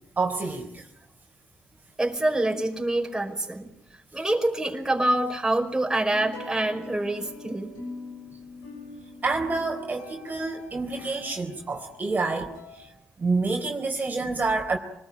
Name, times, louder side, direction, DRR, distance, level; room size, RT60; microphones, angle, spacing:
voice 1, 0.2-0.9 9.2-12.5 12.7-12.9 13.2-14.8, right 3 dB, 35° right, 2 dB, 4.0 m, -28 dB
voice 2, 2.0-3.7 4.1-7.7, right 1 dB, 10° right, 2 dB, 5.3 m, -26 dB
sound 1, 6.1-12.9, left 3 dB, 85° left, 6.9 m, -43 dB
25.5 x 20.0 x 8.9 m, 0.82 s
hypercardioid pair, 50°, 5 cm